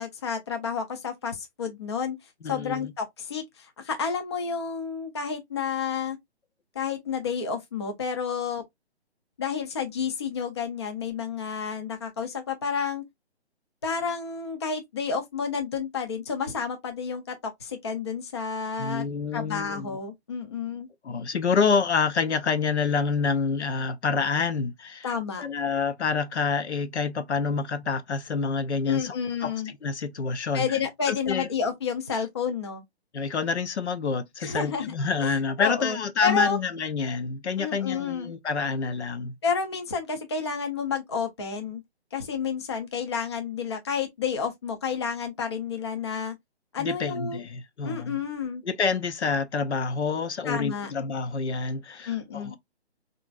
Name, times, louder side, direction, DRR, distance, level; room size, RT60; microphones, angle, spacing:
voice 1, 0.0-2.2 2.4-6.2 6.7-8.6 9.4-13.0 13.8-17.4 17.6-19.0 19.3-20.9 25.0-25.4 28.9-29.7 30.5-32.8 34.4-34.9 35.2-36.0 36.2-36.6 37.6-38.3 39.4-41.8 42.1-46.4 46.7-47.4 47.8-48.6 50.4-50.9 52.1-52.5, left 6 dB, 25° left, 0.4 m, -30 dB
voice 2, 2.4-2.9 18.8-20.0 21.0-25.1 25.4-29.1 29.4-30.8 31.1-31.5 32.1-32.2 33.1-39.4 46.8-48.2 48.6-52.6, left 5 dB, 80° left, 0.6 m, -27 dB
3.6 x 2.5 x 2.3 m
figure-of-eight pair, 140°, 33 cm